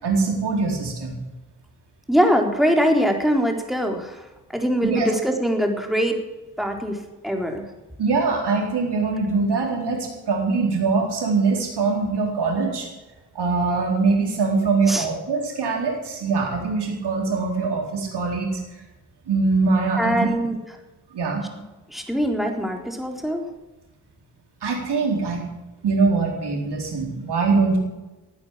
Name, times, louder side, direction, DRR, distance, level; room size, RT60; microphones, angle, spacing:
voice 1, 0.0-1.2 4.8-5.1 8.0-12.9 13.3-18.6 19.3-20.1 21.1-21.4 24.6-25.4 25.8-27.8, right 4 dB, 80° right, 0 dB, 4.2 m, -22 dB
voice 2, 2.1-4.3 4.5-6.2 6.6-7.6 14.9-15.1 20.0-20.6 21.9-23.5, equal, ahead, 2 dB, 4.1 m, -22 dB
16.5 x 9.6 x 7.7 m, 1.1 s
supercardioid pair, 40°, 40 cm